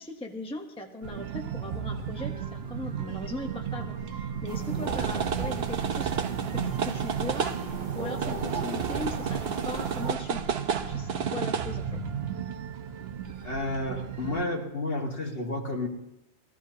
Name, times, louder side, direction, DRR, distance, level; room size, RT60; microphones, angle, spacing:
voice 1, 0.0-6.1 6.5-10.4 10.9-12.0, left 2 dB, 5° left, 2 dB, 1.0 m, -39 dB
sound 1, 1.0-14.4, right 7 dB, 65° right, 1.0 m, -32 dB
sound 2, 4.5-10.1, right 5 dB, 45° right, 1.0 m, -36 dB
voice 2, 13.4-15.9, left 2 dB, 55° left, 0 dB, 2.1 m, -31 dB
20.5 x 15.5 x 2.8 m, 0.87 s
omnidirectional pair, 1.2 m